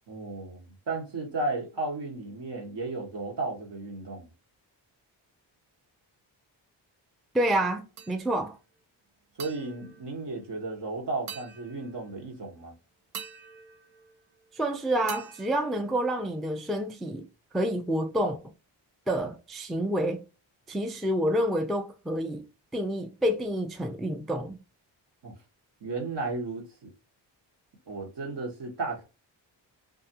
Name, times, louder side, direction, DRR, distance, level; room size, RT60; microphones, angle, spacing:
voice 1, 0.1-4.3 9.4-12.7 25.2-25.3 25.8-26.9 27.9-29.0, right 3 dB, 55° right, 1.2 m, -34 dB
voice 2, 7.3-8.6 14.5-17.3 17.5-18.4 19.1-20.2 20.7-22.4 22.7-24.6, right 1 dB, ahead, 0.4 m, -28 dB
sound 1, 8.0-8.6 9.4-10.8 11.3-12.3 13.1-14.6 15.1-16.5, right 7 dB, 85° right, 0.7 m, -46 dB
2.4 x 2.3 x 2.7 m
supercardioid pair, 45°, 49 cm